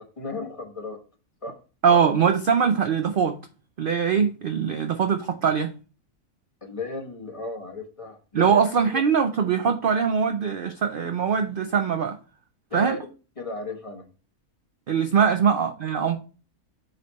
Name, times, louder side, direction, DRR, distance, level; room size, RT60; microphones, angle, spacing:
voice 1, 0.2-1.0 1.4-1.5 6.6-8.6 12.7-13.0 13.4-14.0 15.2-15.3, left 3 dB, 25° left, 1.1 m, -34 dB
voice 2, 1.8-3.4 3.8-5.7 8.3-12.2 12.7-13.0 14.9-16.2, right 6 dB, 70° right, 0.5 m, -22 dB
7.9 x 3.3 x 4.1 m
omnidirectional pair, 1.5 m